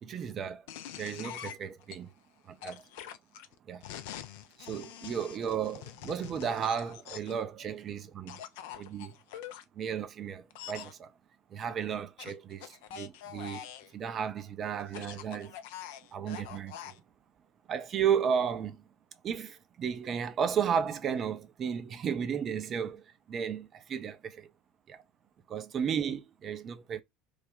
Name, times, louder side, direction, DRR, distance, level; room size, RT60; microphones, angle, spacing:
voice 1, 0.0-0.6 1.0-2.1 2.5-2.8 3.7-3.8 4.6-8.4 8.8-9.2 9.7-11.1 11.5-13.7 13.9-15.6 16.1-17.0 17.7-18.8 19.2-24.5 24.9-25.0 25.5-27.0, right 7 dB, 35° right, 0.5 m, -34 dB
sound 1, 0.7-2.0 2.6-7.4 8.3-9.6 10.5-10.9 12.2-13.9 14.8-17.0, left 10 dB, 60° left, 0.4 m, -45 dB
3.2 x 2.2 x 3.7 m
figure-of-eight pair, 70°, 0 cm